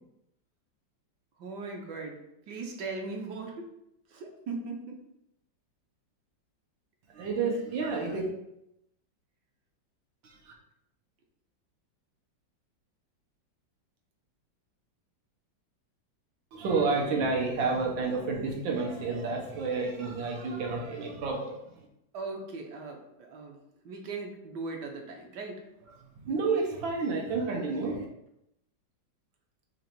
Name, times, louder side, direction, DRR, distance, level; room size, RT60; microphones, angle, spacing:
voice 1, 1.4-2.2 2.5-3.5 4.1-5.0 22.1-23.6 23.8-25.5, right 3 dB, 70° right, 2 dB, 1.3 m, -38 dB
voice 2, 7.1-8.3 10.2-10.5 16.5-21.9 25.9-28.0, right 4 dB, 85° right, 0 dB, 1.7 m, -30 dB
3.9 x 3.1 x 4.4 m, 0.82 s
omnidirectional pair, 2.0 m